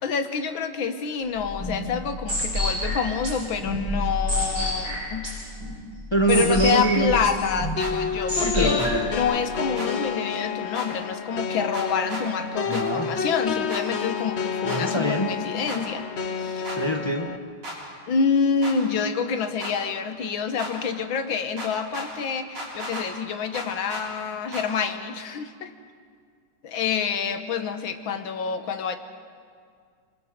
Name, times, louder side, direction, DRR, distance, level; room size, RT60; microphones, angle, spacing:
voice 1, 0.0-5.3 6.3-8.8 9.1-16.7 18.1-25.7 26.6-29.0, left 6 dB, 70° left, 8 dB, 1.9 m, -27 dB
sound 1, 1.3-9.2, left 1 dB, 55° right, 8.6 m, -29 dB
voice 2, 6.1-7.2 8.3-9.1 12.6-13.2 14.6-15.4 16.7-17.3, right 1 dB, 20° left, 4 dB, 0.9 m, -24 dB
sound 2, 7.8-17.4, left 6 dB, 55° left, 0.7 m, -30 dB
sound 3, 7.8-7.9 8.8-8.9 9.8-9.9 10.7-10.9 11.7-12.2 12.7-12.9 13.7-13.8 14.7-14.8 15.7-15.8 16.6-16.8 17.6-17.8 18.6-18.8 19.6-19.7 20.6-20.7 21.6-22.1 22.6-23.1 23.5-24.0 24.5-24.7, right 1 dB, 85° right, 5.8 m, -35 dB
26.0 x 26.0 x 5.2 m, 2.1 s
omnidirectional pair, 2.3 m